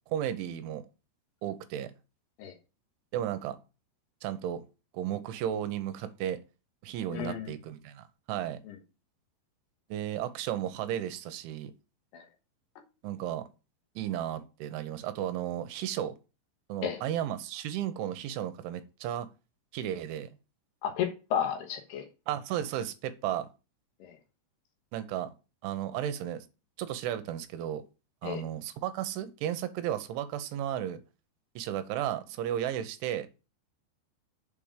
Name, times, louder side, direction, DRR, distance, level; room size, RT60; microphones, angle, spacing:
voice 1, 0.1-0.8 1.4-1.9 3.1-3.6 4.2-4.7 4.9-6.4 6.8-8.6 9.9-11.7 13.0-13.4 14.0-16.1 16.7-19.3 19.7-20.4 22.3-23.5 24.9-25.3 25.6-26.5 26.8-27.8 28.2-31.0 31.6-33.3, right 11 dB, 80° right, 3.3 m, -34 dB
voice 2, 7.1-7.5 8.7-8.8 12.1-12.2 16.8-17.0 20.8-22.0 24.0-24.1 28.2-28.4, left 9 dB, 70° left, 3.0 m, -32 dB
7.5 x 5.0 x 7.3 m
omnidirectional pair, 5.5 m